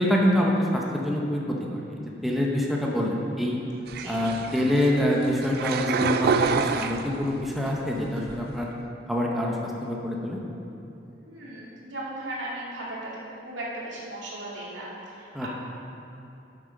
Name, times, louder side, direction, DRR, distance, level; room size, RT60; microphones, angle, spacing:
voice 1, 0.0-3.6 4.0-8.7 9.1-10.4 15.3-15.5, left 1 dB, ahead, -3 dB, 0.9 m, -26 dB
sound 1, 3.9-7.5 8.0-8.6, right 5 dB, 55° right, 0.4 m, -28 dB
voice 2, 11.2-13.1 13.4-15.5, right 1 dB, 90° right, -6 dB, 2.3 m, -37 dB
8.6 x 7.0 x 5.3 m, 2.9 s
head